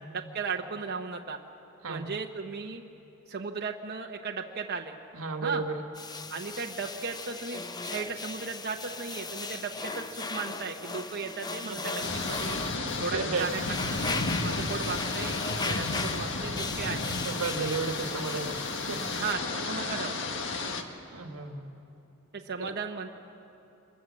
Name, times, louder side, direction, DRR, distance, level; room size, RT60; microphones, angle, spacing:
voice 1, 0.1-1.4 1.9-2.8 3.3-5.0 5.4-5.6 6.3-12.6 13.0-13.6 13.9-17.3 19.2-20.2 22.3-23.1, right 5 dB, 50° right, 2 dB, 0.9 m, -36 dB
voice 2, 5.1-5.8 12.7-13.5 17.2-18.6 18.9-19.0 21.1-21.9, right 4 dB, 80° right, 5 dB, 1.5 m, -33 dB
sound 1, 6.0-19.3, left 3 dB, 20° left, 0.7 m, -37 dB
sound 2, 12.0-20.8, left 3 dB, 60° left, 1.5 m, -33 dB
25.5 x 21.0 x 7.4 m, 2.9 s
head